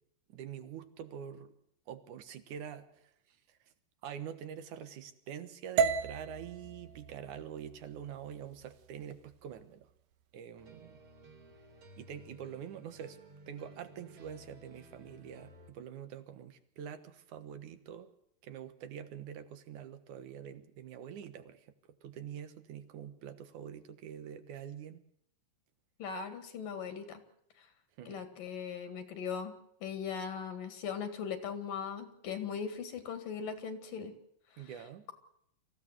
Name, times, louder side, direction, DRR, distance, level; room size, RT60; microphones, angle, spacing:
voice 1, 0.3-1.5 1.9-3.6 4.0-9.9 10.3-11.0 12.0-13.2 13.5-18.1 18.4-21.7 22.0-25.0 28.0-28.2 34.6-35.1, right 8 dB, 65° right, 11 dB, 2.7 m, -45 dB
sound 1, 5.8-9.9, right 6 dB, 90° right, 2.9 m, -36 dB
sound 2, 10.6-15.7, right 1 dB, 40° right, 3.4 m, -56 dB
voice 2, 26.0-27.2 28.1-29.5 29.8-34.1, left 6 dB, 75° left, 9 dB, 3.6 m, -39 dB
25.0 x 15.5 x 8.1 m, 0.71 s
omnidirectional pair, 4.0 m